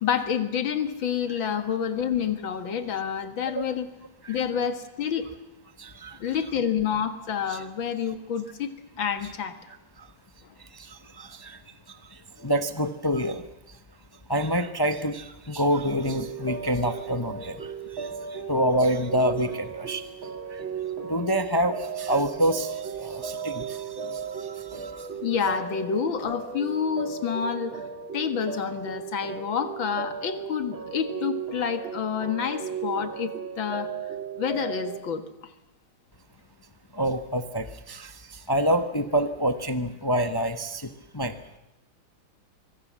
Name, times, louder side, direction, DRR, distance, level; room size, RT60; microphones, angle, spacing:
voice 1, 0.0-3.9 4.3-5.3 6.2-8.7 9.0-9.6 25.2-27.8 28.1-33.9 34.4-35.5, left 7 dB, 80° left, 9 dB, 2.4 m, -28 dB
voice 2, 5.8-6.2 7.5-7.6 10.7-11.6 12.4-13.4 14.3-17.7 17.9-20.0 21.1-25.1 36.9-38.1 38.5-40.9 41.1-41.4, equal, 20° left, 9 dB, 0.7 m, -27 dB
sound 1, 15.9-35.0, right 6 dB, 85° right, 3.2 m, -36 dB
25.0 x 23.5 x 7.5 m, 0.95 s
omnidirectional pair, 2.1 m